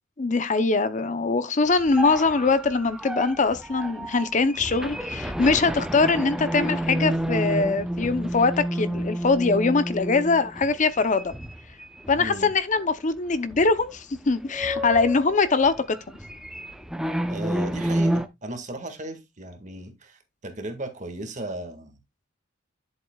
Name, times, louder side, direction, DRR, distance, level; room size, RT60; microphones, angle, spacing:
voice 1, 0.2-11.3 12.1-16.0, left 4 dB, 40° left, 0.6 m, -22 dB
sound 1, 1.7-12.4 12.8-12.9 13.5-13.9 14.2-18.3, right 1 dB, 5° right, 0.7 m, -30 dB
voice 2, 12.1-12.5 17.3-22.0, right 1 dB, 40° right, 1.8 m, -36 dB
11.0 x 7.5 x 2.3 m
head